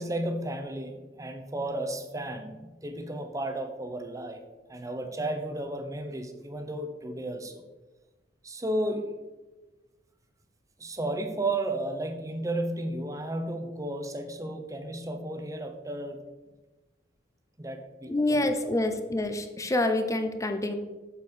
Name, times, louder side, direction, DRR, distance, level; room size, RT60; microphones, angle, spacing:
voice 1, 0.0-4.4 4.7-7.6 8.4-9.1 10.8-16.2 17.6-18.7, right 1 dB, 20° right, 6 dB, 0.8 m, -33 dB
voice 2, 18.1-20.7, left 2 dB, 15° left, 6 dB, 0.7 m, -27 dB
8.2 x 7.0 x 4.3 m, 1.2 s
head